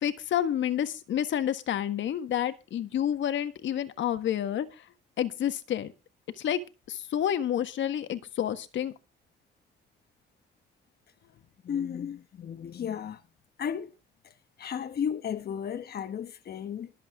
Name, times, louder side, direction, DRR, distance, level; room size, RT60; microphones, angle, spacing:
voice 1, 0.0-4.8 5.2-5.9 6.4-6.6 6.9-8.9, left 10 dB, 70° left, 1.6 m, -29 dB
voice 2, 11.6-13.2 13.6-13.9 14.2-14.3 14.6-16.9, left 8 dB, 55° left, 1.2 m, -34 dB
22.5 x 7.8 x 3.7 m
cardioid pair, 90°, 20 cm